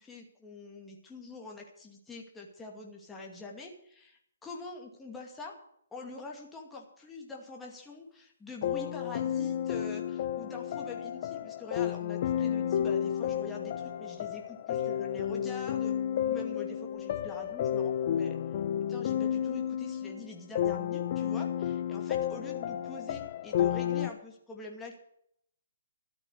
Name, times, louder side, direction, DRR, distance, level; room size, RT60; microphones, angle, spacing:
voice 1, 0.0-5.5 5.9-15.9 16.3-18.4 18.9-25.0, left 3 dB, 10° left, -1 dB, 2.3 m, -45 dB
sound 1, 8.6-24.1, left 9 dB, 45° left, 0.9 m, -32 dB
13.0 x 8.5 x 7.9 m, 0.70 s
hypercardioid pair, 145°, 0 cm